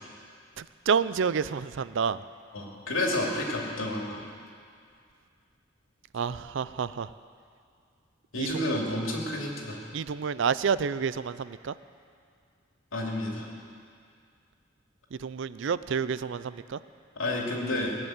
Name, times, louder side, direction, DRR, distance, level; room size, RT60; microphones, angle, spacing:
voice 1, 0.6-2.2 6.1-7.1 8.4-8.8 9.9-11.7 15.1-16.8, right 6 dB, 65° right, 16 dB, 0.4 m, -29 dB
voice 2, 2.5-4.2 8.3-9.8 12.9-13.5 17.2-18.0, left 1 dB, 85° left, -1 dB, 2.7 m, -30 dB
18.0 x 8.1 x 9.1 m, 2.2 s
head